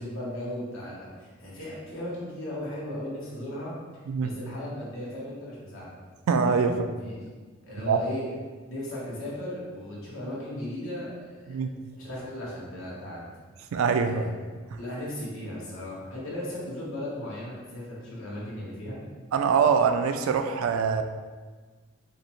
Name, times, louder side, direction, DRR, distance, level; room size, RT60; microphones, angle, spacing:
voice 1, 0.0-5.9 6.6-7.2 7.6-8.3 8.7-11.6 11.9-13.3 14.0-14.3 14.8-19.0, left 1 dB, 75° left, -6 dB, 1.2 m, -36 dB
voice 2, 4.1-4.4 6.3-6.8 7.9-8.0 11.5-11.7 13.7-14.3 14.7-14.8 19.3-21.0, right 6 dB, 85° right, 7 dB, 0.3 m, -24 dB
5.1 x 2.1 x 3.0 m, 1.4 s
head